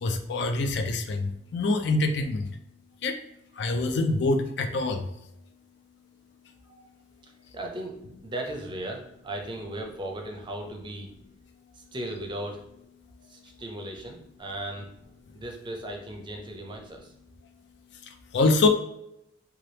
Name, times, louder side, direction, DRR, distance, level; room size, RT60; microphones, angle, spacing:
voice 1, 0.0-2.5 3.0-3.2 3.5-5.1 18.0-18.7, left 2 dB, 65° left, 6 dB, 0.4 m, -25 dB
voice 2, 7.5-11.1 11.7-12.6 13.3-14.9 15.3-17.1, right 1 dB, 25° right, 1 dB, 0.5 m, -37 dB
2.9 x 2.3 x 3.2 m, 0.81 s
head